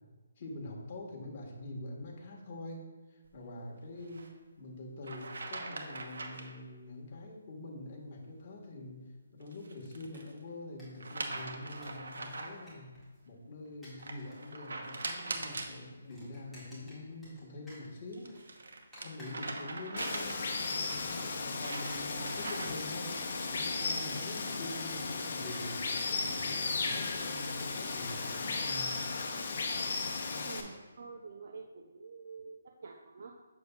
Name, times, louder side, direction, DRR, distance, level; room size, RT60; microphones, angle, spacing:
voice 1, 0.4-9.0 9.3-12.9 13.2-18.3 19.0-20.4 20.7-28.9, left 2 dB, 35° left, -2 dB, 1.6 m, -45 dB
sound 1, 4.0-4.3 5.0-6.6 9.4-10.3 11.0-12.7 14.0-15.8 17.8-20.7 21.2-22.9, right 3 dB, 75° right, 1.0 m, -41 dB
sound 2, 10.0-10.5 10.8-10.9 11.2-12.1 12.3-13.2 13.7-14.4 14.7-15.3 15.6-17.4 17.7-18.4 18.9-19.8 20.2-21.3 21.7-28.4, equal, ahead, 2.1 m, -56 dB
Water, 20.0-30.6, left 4 dB, 55° left, 0.9 m, -35 dB
voice 2, 30.4-33.3, right 4 dB, 55° right, 2 dB, 0.6 m, -48 dB
7.9 x 6.9 x 2.4 m, 1.2 s
hypercardioid pair, 160°, 0 cm